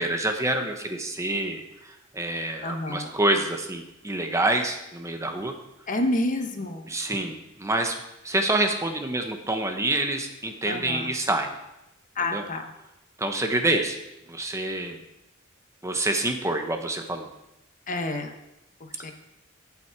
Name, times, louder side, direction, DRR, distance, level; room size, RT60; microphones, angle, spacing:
voice 1, 0.0-5.6 6.9-8.0 8.2-11.5 12.2-12.4 13.2-14.0 14.3-15.0 15.8-17.3, right 2 dB, 15° right, 5 dB, 0.9 m, -27 dB
voice 2, 2.6-3.2 5.9-6.9 10.6-11.1 12.1-12.7 17.9-18.4 18.8-19.1, left 1 dB, 40° left, 5 dB, 1.0 m, -29 dB
15.5 x 5.9 x 4.6 m, 0.92 s
head